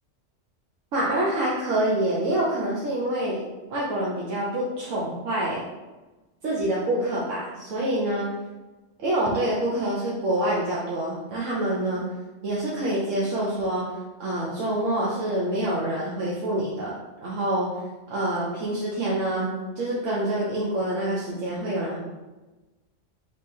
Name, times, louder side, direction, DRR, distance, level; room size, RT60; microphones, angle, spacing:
voice 1, 0.9-3.4 3.7-5.6 6.4-8.2 9.0-12.1 12.4-13.8 14.2-16.9 17.2-17.7 18.1-19.5 19.8-22.0, right 1 dB, 85° right, -6 dB, 1.2 m, -26 dB
3.6 x 3.2 x 4.1 m, 1.1 s
omnidirectional pair, 1.3 m